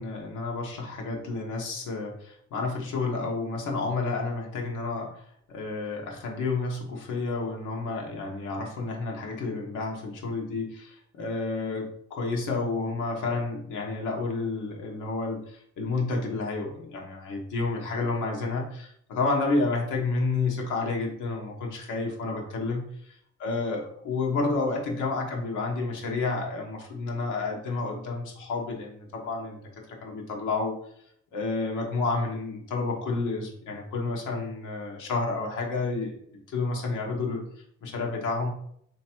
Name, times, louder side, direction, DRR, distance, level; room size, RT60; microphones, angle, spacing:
voice 1, 0.0-5.2 5.5-22.9 23.4-29.6 30.0-30.7 31.3-36.2 36.5-37.4 37.8-38.5, left 3 dB, 85° left, 0 dB, 1.2 m, -30 dB
3.3 x 2.9 x 4.4 m, 0.68 s
cardioid pair, 90°, 30 cm